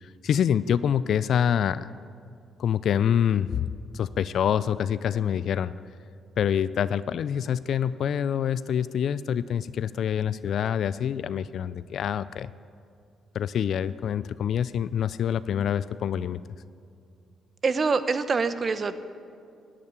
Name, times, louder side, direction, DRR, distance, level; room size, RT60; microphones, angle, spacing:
voice 1, 0.0-1.9 2.6-3.7 3.9-5.7 6.4-12.5 13.3-16.4, left 9 dB, 65° left, 16 dB, 0.3 m, -26 dB
voice 2, 17.6-19.0, right 4 dB, 40° right, 12 dB, 0.8 m, -25 dB
11.0 x 8.8 x 9.8 m, 2.5 s
cardioid pair, 90°, 0 cm